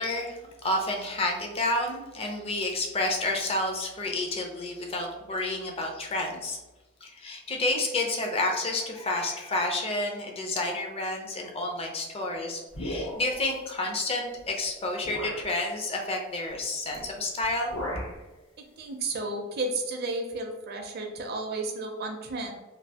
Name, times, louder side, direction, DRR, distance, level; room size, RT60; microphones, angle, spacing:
voice 1, 0.0-6.6 7.0-17.7, left 2 dB, 30° left, 1 dB, 0.5 m, -30 dB
sound 1, 12.7-13.5 14.4-14.5 15.0-15.5 16.9-17.1 17.4-18.2, equal, 80° left, 1.1 m, -36 dB
voice 2, 18.6-22.5, right 2 dB, 50° right, 3 dB, 0.5 m, -33 dB
3.2 x 2.4 x 2.7 m, 1.1 s
head